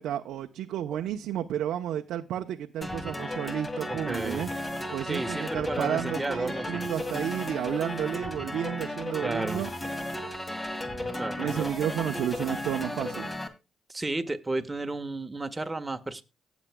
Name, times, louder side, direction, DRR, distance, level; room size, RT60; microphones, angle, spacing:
voice 1, 0.0-4.5 4.9-9.7 11.4-13.3, right 10 dB, 80° right, 0.8 m, -32 dB
sound 1, 2.8-13.5, left 1 dB, 20° left, 2.4 m, -35 dB
voice 2, 3.9-4.5 5.1-6.8 9.2-9.6 11.2-11.7 13.9-16.2, right 2 dB, 15° right, 1.5 m, -33 dB
18.0 x 7.3 x 2.3 m
cardioid pair, 90°, 0 cm